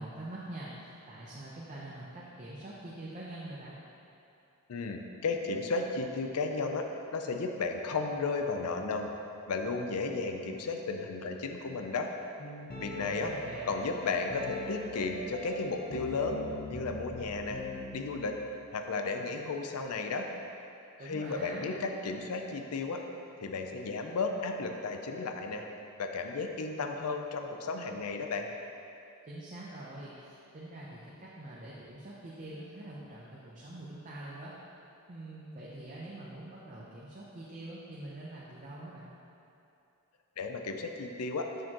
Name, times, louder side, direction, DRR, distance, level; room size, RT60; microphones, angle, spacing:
voice 1, 0.0-3.8 13.0-13.7 21.0-21.7 29.3-34.5 35.1-39.1, right 1 dB, 35° right, -6 dB, 0.7 m, -44 dB
voice 2, 4.7-6.9 7.1-9.1 9.5-12.1 12.8-13.3 13.7-16.4 16.7-17.6 17.9-18.4 18.7-20.3 21.0-23.0 23.4-25.6 26.0-28.5 40.4-41.5, left 4 dB, 80° left, 4 dB, 0.5 m, -34 dB
sound 1, 12.4-18.4, left 1 dB, 45° left, 0.8 m, -42 dB
6.5 x 6.4 x 2.9 m, 2.8 s
head